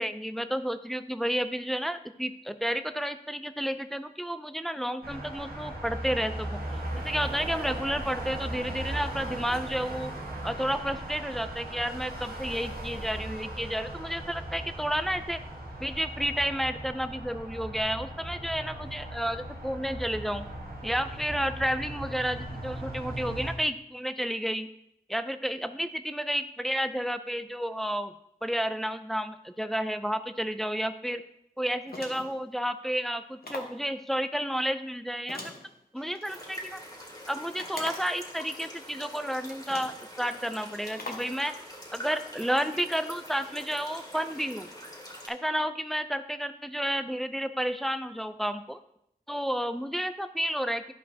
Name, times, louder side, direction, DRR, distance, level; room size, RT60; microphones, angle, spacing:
voice 1, 0.0-10.1 10.4-15.4 15.8-20.5 20.8-24.7 25.1-28.1 28.4-31.2 31.6-35.5 35.9-36.8 37.3-39.9 40.2-41.5 41.9-44.7 45.3-48.8 49.3-50.9, equal, ahead, 10 dB, 0.4 m, -31 dB
sound 1, 5.0-23.5, right 1 dB, 70° right, 1.3 m, -38 dB
sound 2, 31.9-32.4 33.4-33.8 35.3-36.3 37.6-38.2 39.1-39.2 39.7-40.0 41.0-41.3, left 2 dB, 70° left, 1.2 m, -41 dB
sound 3, 36.2-45.3, equal, 25° left, 2.1 m, -44 dB
11.5 x 5.2 x 2.8 m, 0.76 s
wide cardioid pair, 55°, 16 cm